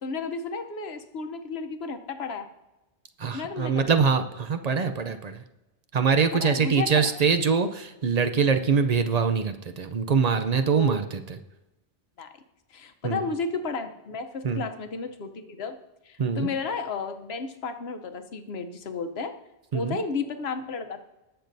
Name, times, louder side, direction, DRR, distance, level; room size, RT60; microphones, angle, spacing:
voice 1, 0.0-2.5 3.3-4.0 6.3-7.2 10.7-11.0 12.2-12.3 12.7-15.8 16.0-19.3 19.7-21.0, left 4 dB, 70° left, 7 dB, 1.1 m, -33 dB
voice 2, 3.2-5.4 5.9-11.4 13.0-13.3 14.4-14.6 16.2-16.5 19.7-20.0, right 5 dB, 45° right, 9 dB, 0.6 m, -24 dB
19.5 x 6.7 x 2.7 m, 1.0 s
omnidirectional pair, 1.1 m